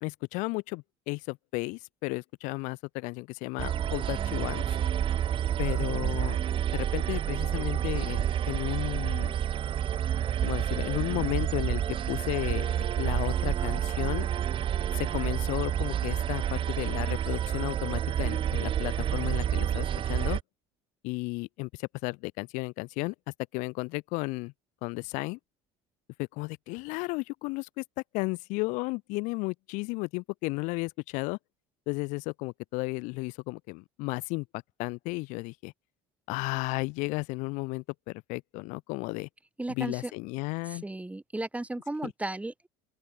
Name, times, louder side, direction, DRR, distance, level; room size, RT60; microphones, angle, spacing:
voice 1, 0.0-4.8 5.6-6.4 6.7-9.4 10.4-14.3 14.9-20.4 21.0-23.1 23.5-24.5 24.8-25.4 26.2-27.8 28.1-31.4 31.9-35.7 36.3-39.3 39.7-40.8 42.0-42.1, left 26 dB, 65° left, 0.4 m, -34 dB
sound 1, 3.6-20.4, right 10 dB, 40° right, 0.6 m, -29 dB
voice 2, 39.6-40.1 40.7-42.7, right 2 dB, 10° right, 1.3 m, -35 dB
open air
hypercardioid pair, 70°, 14 cm